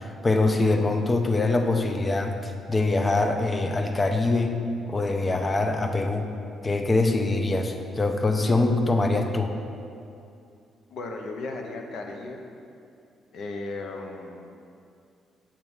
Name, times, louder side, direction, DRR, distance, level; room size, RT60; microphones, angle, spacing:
voice 1, 0.0-4.6 4.9-6.3 6.6-9.5, left 2 dB, 25° left, 5 dB, 0.6 m, -24 dB
voice 2, 10.9-12.4 13.3-14.5, left 2 dB, 70° left, 3 dB, 0.8 m, -35 dB
7.4 x 3.6 x 6.2 m, 2.5 s
cardioid pair, 90°, 0 cm